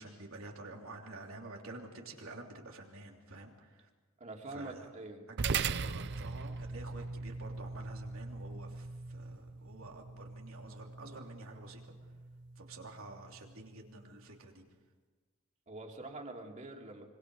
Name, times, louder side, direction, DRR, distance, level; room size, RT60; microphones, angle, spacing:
voice 1, 0.0-3.9 4.5-4.9 5.3-12.2 12.5-14.6, right 2 dB, 85° right, 1 dB, 3.1 m, -49 dB
voice 2, 4.2-5.2 15.7-17.0, right 2 dB, 35° right, 1 dB, 2.9 m, -45 dB
sound 1, 5.4-14.0, right 5 dB, 55° right, 0.6 m, -40 dB
26.0 x 24.0 x 4.9 m, 1.3 s
head